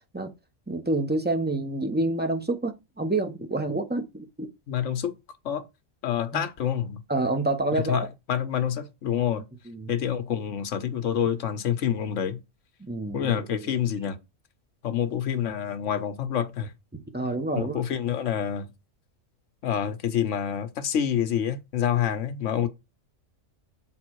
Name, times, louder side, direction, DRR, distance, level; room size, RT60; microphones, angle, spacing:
voice 1, 0.7-4.5 6.3-6.5 7.1-8.1 9.7-9.9 12.8-13.8 16.9-17.8, right 2 dB, 10° right, 0.7 m, -28 dB
voice 2, 4.7-5.1 5.4-5.6 6.0-7.0 7.7-9.4 9.9-12.4 13.1-14.2 14.8-16.7 17.5-18.7 19.6-22.7, left 9 dB, 70° left, 1.2 m, -27 dB
7.5 x 4.0 x 4.6 m
omnidirectional pair, 1.3 m